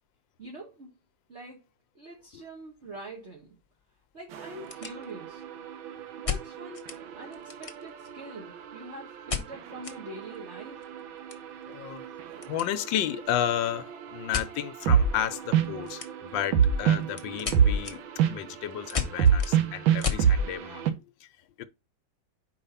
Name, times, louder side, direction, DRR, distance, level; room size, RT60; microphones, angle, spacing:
voice 1, 0.4-0.9 1.3-1.6 1.9-3.6 4.1-5.4 6.2-10.8, right 2 dB, 35° right, 1.7 m, -44 dB
sound 1, 2.2-2.4 2.8-2.9 3.5-3.6 3.8-3.9 4.4-5.4 6.2-7.0 7.3-8.1 9.3-10.0 10.3-10.4 10.7-12.7 13.0-13.3 14.3-14.5 15.8-16.4 16.8-20.3, left 6 dB, 30° left, 0.6 m, -34 dB
sound 2, 4.3-20.9, right 7 dB, 90° right, 1.6 m, -29 dB
voice 2, 11.7-12.1 12.5-18.0 18.3-21.3 21.6-21.7, left 11 dB, 80° left, 1.4 m, -32 dB
4.9 x 4.8 x 5.6 m
omnidirectional pair, 2.1 m